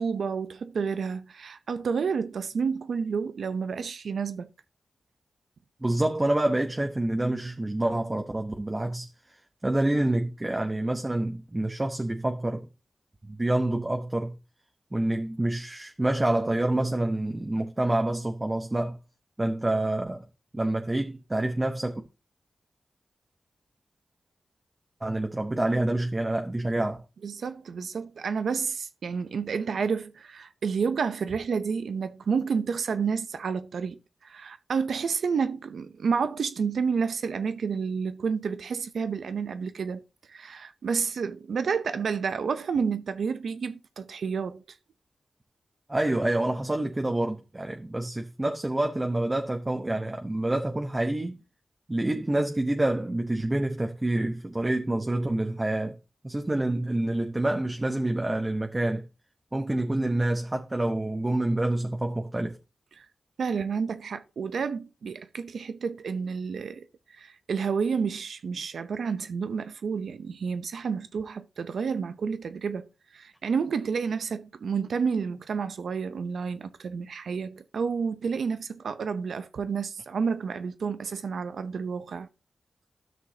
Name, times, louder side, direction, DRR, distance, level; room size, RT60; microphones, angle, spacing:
voice 1, 0.0-4.5 27.2-40.0 40.3-44.6 63.0-63.1 63.4-66.9 67.1-72.9 73.1-82.3, right 5 dB, 85° right, 0.7 m, -30 dB
voice 2, 5.8-9.1 9.6-12.7 13.2-14.3 14.9-19.0 19.4-20.2 20.5-22.0 25.0-27.0 45.9-51.4 51.9-56.0 56.2-59.0 59.5-62.6, right 1 dB, 25° right, 1.0 m, -27 dB
12.5 x 6.2 x 2.8 m
cardioid pair, 45°, 0 cm